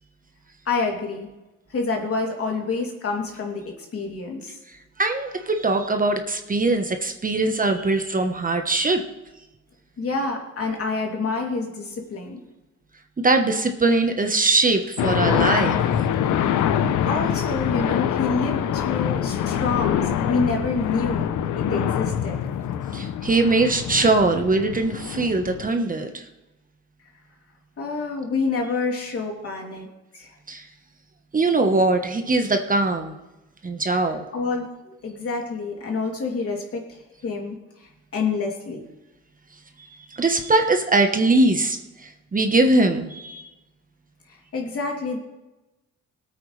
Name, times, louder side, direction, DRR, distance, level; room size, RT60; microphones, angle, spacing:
voice 1, 0.6-1.3 1.7-4.6 10.0-12.4 17.0-21.3 21.5-22.4 27.8-29.9 30.1-30.3 34.3-37.0 37.2-38.8 44.5-45.2, left 4 dB, 50° left, 0 dB, 3.0 m, -27 dB
voice 2, 5.0-9.0 13.2-15.8 22.9-26.2 30.5-30.7 31.3-33.1 33.6-34.3 40.1-43.5, right 2 dB, 25° right, 5 dB, 1.2 m, -21 dB
sound 1, 15.0-25.7, left 9 dB, 80° left, 0.9 m, -24 dB
19.0 x 8.8 x 3.3 m, 1.0 s
cardioid pair, 90°, 30 cm